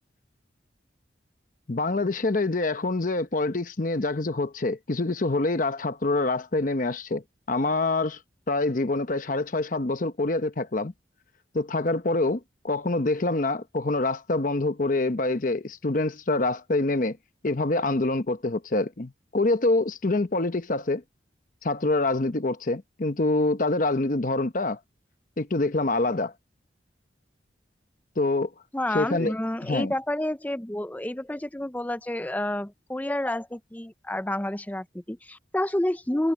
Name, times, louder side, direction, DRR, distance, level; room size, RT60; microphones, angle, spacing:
voice 1, 1.7-8.2 8.5-10.9 11.5-17.2 17.4-21.0 21.6-24.8 25.4-26.3 28.2-28.5 28.9-29.3 29.6-29.9, left 2 dB, 45° left, 0.9 m, -26 dB
voice 2, 28.7-36.3, left 1 dB, 10° left, 0.5 m, -29 dB
head